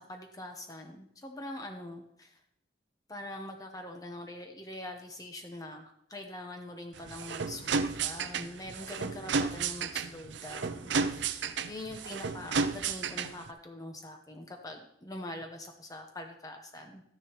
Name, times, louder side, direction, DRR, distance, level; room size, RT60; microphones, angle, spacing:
voice 1, 0.0-2.4 3.1-17.0, left 1 dB, 20° left, 3 dB, 0.8 m, -44 dB
sound 1, 6.9-13.5, right 5 dB, 70° right, 0.6 m, -33 dB
13.5 x 9.9 x 3.0 m, 0.73 s
head